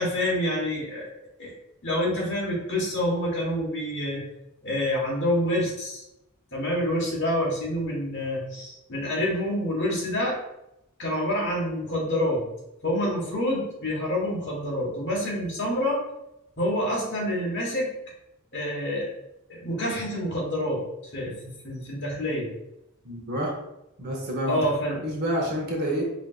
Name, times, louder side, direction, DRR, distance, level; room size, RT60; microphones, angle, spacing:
voice 1, 0.0-1.5 1.8-4.2 4.6-6.0 6.5-10.4 11.0-12.5 12.8-16.0 16.6-17.9 18.5-19.1 19.5-20.8 21.1-22.5 24.5-25.0, left 1 dB, 55° left, -4 dB, 1.4 m, -27 dB
voice 2, 23.0-23.5 24.0-24.6 25.0-26.0, equal, 45° right, -1 dB, 0.9 m, -28 dB
4.8 x 2.8 x 2.4 m, 0.87 s
head